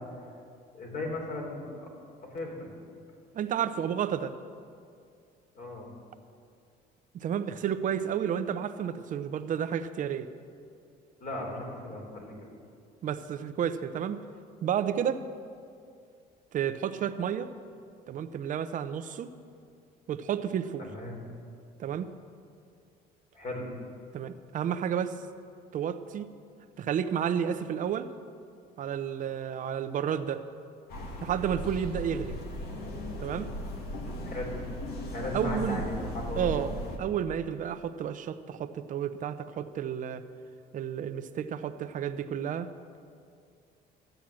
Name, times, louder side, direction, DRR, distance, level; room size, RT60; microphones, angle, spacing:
voice 1, 0.7-1.9 2.3-2.5 5.6-5.9 11.2-12.3 20.8-21.2 23.3-23.7 34.3-34.6 35.1-36.7, left 1 dB, 50° left, 0 dB, 3.7 m, -36 dB
voice 2, 3.3-4.3 7.1-10.3 13.0-14.2 14.6-15.2 16.5-17.5 18.1-19.3 20.1-20.8 21.8-22.1 24.1-25.2 25.7-26.2 26.8-28.1 28.8-30.4 31.2-32.4 33.2-33.5 35.3-35.8 36.4-36.7 37.0-40.2 40.7-42.7, right 8 dB, 50° right, 10 dB, 0.7 m, -31 dB
sound 1, 30.9-37.0, equal, 70° left, 1.9 m, -37 dB
13.0 x 9.1 x 7.5 m, 2.4 s
cardioid pair, 110°, 17 cm